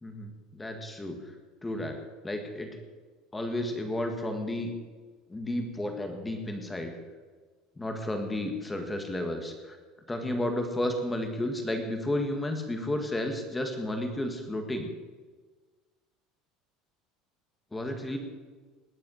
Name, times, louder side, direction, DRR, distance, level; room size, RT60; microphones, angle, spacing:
voice 1, 0.0-1.3 1.6-2.0 2.2-2.7 3.3-4.7 5.3-6.9 7.8-9.8 10.1-14.9 17.7-18.2, left 1 dB, 10° left, 5 dB, 1.6 m, -32 dB
19.5 x 8.3 x 6.4 m, 1.4 s
cardioid pair, 180°, 0 cm